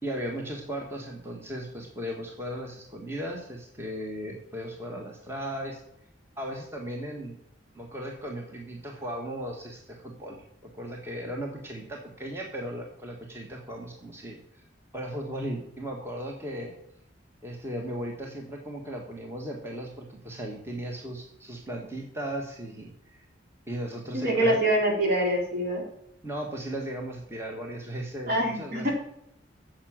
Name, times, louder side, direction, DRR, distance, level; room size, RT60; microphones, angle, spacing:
voice 1, 0.0-5.8 6.4-7.4 7.7-10.4 10.7-14.4 14.9-16.7 17.4-23.2 23.7-24.6 26.2-28.9, right 1 dB, 15° right, 0 dB, 1.6 m, -36 dB
voice 2, 24.1-25.8 28.3-28.9, right 1 dB, 55° right, -1 dB, 3.9 m, -25 dB
10.0 x 7.6 x 7.5 m, 0.76 s
head